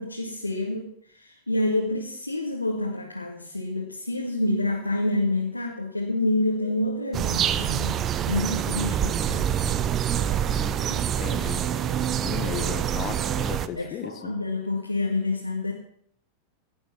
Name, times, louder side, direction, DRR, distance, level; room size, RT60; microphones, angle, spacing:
voice 1, 0.0-9.8 10.9-11.0 13.8-15.7, left 2 dB, 85° left, -1 dB, 2.0 m, -28 dB
sound 1, 6.5-13.7, right 8 dB, 90° right, 5.8 m, -44 dB
sound 2, 7.1-13.7, right 9 dB, 30° right, 0.8 m, -26 dB
voice 2, 11.2-11.7 12.2-14.4, left 8 dB, 30° left, 9 dB, 1.8 m, -35 dB
17.0 x 10.5 x 5.9 m, 0.66 s
figure-of-eight pair, 90°, 0 cm